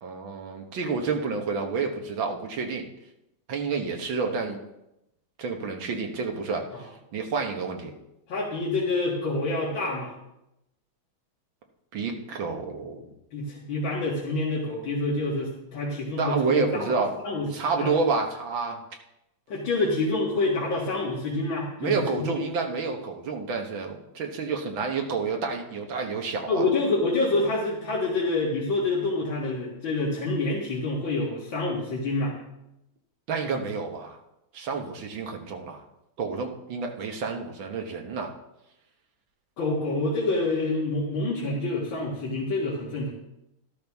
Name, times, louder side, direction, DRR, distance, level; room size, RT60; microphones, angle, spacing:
voice 1, 0.0-2.9 3.5-4.6 5.4-6.6 7.1-7.9 11.9-13.0 16.2-17.2 17.5-18.8 21.8-26.6 33.3-34.2 34.5-35.8 36.2-38.3, right 4 dB, 80° right, 3 dB, 2.1 m, -29 dB
voice 2, 8.3-10.1 13.3-16.9 17.2-17.5 17.8-17.9 19.5-22.3 26.5-32.4 39.6-43.1, left 2 dB, 80° left, -5 dB, 2.5 m, -27 dB
12.5 x 12.5 x 3.6 m, 0.88 s
omnidirectional pair, 2.1 m